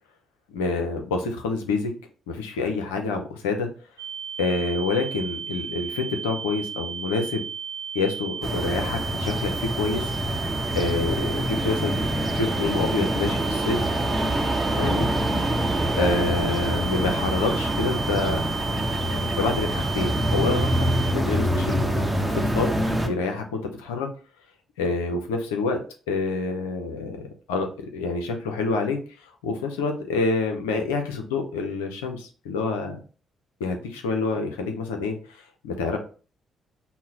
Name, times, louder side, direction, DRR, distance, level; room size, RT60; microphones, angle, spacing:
voice 1, 0.5-2.0 2.3-3.7 4.4-7.4 7.9-10.1 10.7-13.9 14.8-15.1 16.0-18.4 19.1-20.9 21.1-21.8 22.3-22.7 23.0-24.1 24.8-25.8 26.1-27.2 27.5-29.0 29.4-33.0 33.6-35.2 35.6-36.0, left 4 dB, 85° left, 5 dB, 0.6 m, -27 dB
sound 1, 4.0-21.1, right 7 dB, 90° right, 0.3 m, -34 dB
sound 2, 8.4-23.1, right 1 dB, 10° right, 0.9 m, -25 dB
5.5 x 2.1 x 2.8 m, 0.38 s
hypercardioid pair, 45°, 0 cm